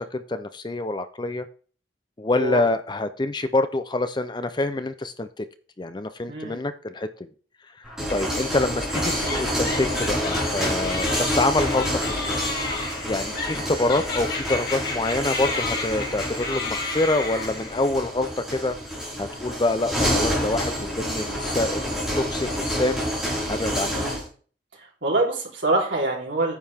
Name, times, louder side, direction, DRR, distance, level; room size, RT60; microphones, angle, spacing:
voice 1, 0.0-1.5 2.2-5.5 5.8-7.3 8.1-12.5 13.1-18.8 19.2-23.1 23.5-24.0, left 2 dB, 25° left, 10 dB, 0.5 m, -26 dB
voice 2, 6.3-6.6 23.8-24.2 25.0-26.6, right 2 dB, 80° right, -2 dB, 3.6 m, -25 dB
sound 1, 7.8-24.3, equal, 5° right, 4.3 m, -28 dB
sound 2, 8.9-17.9, left 3 dB, 55° left, 2.6 m, -32 dB
9.6 x 7.6 x 3.5 m, 0.42 s
head